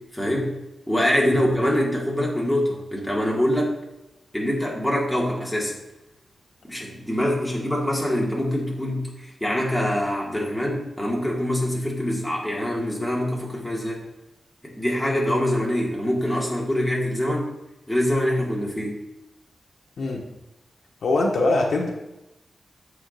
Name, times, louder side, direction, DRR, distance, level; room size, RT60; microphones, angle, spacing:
voice 1, 0.1-0.5 0.9-3.8 4.3-5.7 6.7-9.1 9.4-14.0 14.6-17.5 17.9-19.0, equal, 5° left, -4 dB, 2.0 m, -24 dB
voice 2, 21.0-21.9, left 2 dB, 85° left, 0 dB, 1.3 m, -23 dB
14.0 x 4.9 x 2.6 m, 0.94 s
wide cardioid pair, 130°, 0 cm